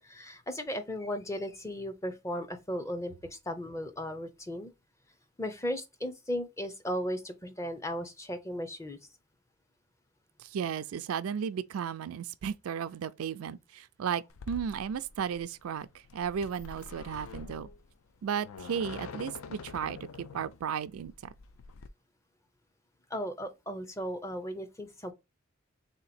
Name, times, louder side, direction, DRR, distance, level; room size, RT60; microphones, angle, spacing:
voice 1, 0.0-4.7 5.4-9.0 23.1-25.1, equal, 15° left, 0.5 m, -36 dB
voice 2, 10.4-15.9 16.1-17.7 18.2-21.3, right 7 dB, 85° right, 0.4 m, -34 dB
sound 1, 14.3-21.9, left 5 dB, 80° left, 0.4 m, -46 dB
3.5 x 2.9 x 4.1 m
head